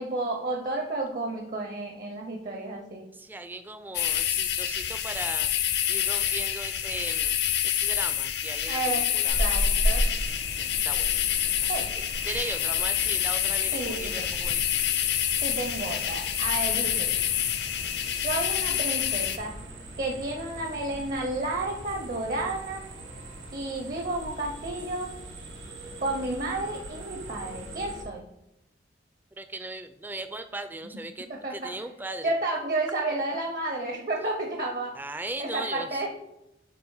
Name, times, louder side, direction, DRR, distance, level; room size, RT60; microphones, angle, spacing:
voice 1, 0.0-3.0 8.7-9.1 9.4-10.0 11.7-11.9 13.7-14.3 15.4-17.1 18.0-19.5 20.0-22.8 23.5-25.1 26.0-28.3 31.3-31.7 32.2-34.9 35.4-36.1, right 2 dB, 50° right, 2 dB, 0.8 m, -31 dB
voice 2, 3.1-5.5 5.9-7.4 7.6-9.4 10.6-11.2 11.6-14.9 29.4-32.3 34.9-36.0, right 2 dB, 10° right, 9 dB, 0.4 m, -38 dB
sound 1, 3.9-19.4, left 10 dB, 65° left, 0.6 m, -27 dB
sound 2, 9.3-28.0, right 1 dB, 85° right, 1.9 m, -36 dB
7.9 x 2.9 x 4.8 m, 0.87 s
head